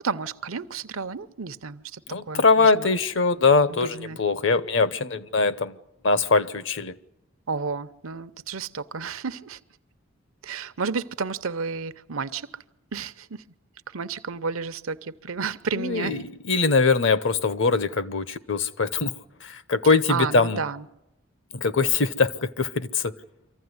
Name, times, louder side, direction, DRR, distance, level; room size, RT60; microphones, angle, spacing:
voice 1, 0.0-2.0 2.3-2.9 3.7-4.2 7.5-9.6 10.4-12.5 12.9-13.4 13.9-16.2 20.1-20.8, right 5 dB, 85° right, 0.8 m, -31 dB
voice 2, 2.1-5.8 6.0-6.9 15.7-19.1 19.4-20.6 21.5-23.1, left 4 dB, 65° left, 0.9 m, -22 dB
24.5 x 15.0 x 9.6 m
head